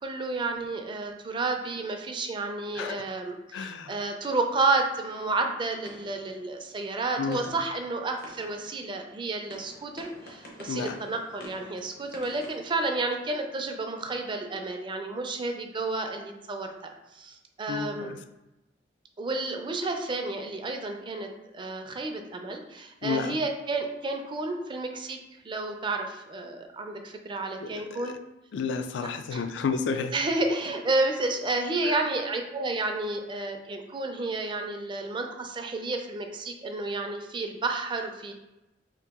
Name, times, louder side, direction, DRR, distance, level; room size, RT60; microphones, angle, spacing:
voice 1, 0.0-18.2 19.2-28.2 29.3-29.4 30.1-38.3, right 2 dB, 25° right, 4 dB, 0.4 m, -31 dB
voice 2, 2.7-3.1 3.5-3.9 7.2-7.6 10.7-11.0 17.7-18.2 23.0-23.4 27.6-28.2 28.5-30.1 31.8-32.0, left 5 dB, 80° left, 8 dB, 0.3 m, -31 dB
sound 1, 4.5-13.6, left 1 dB, 60° left, 0.7 m, -51 dB
2.9 x 2.7 x 3.4 m, 0.97 s
head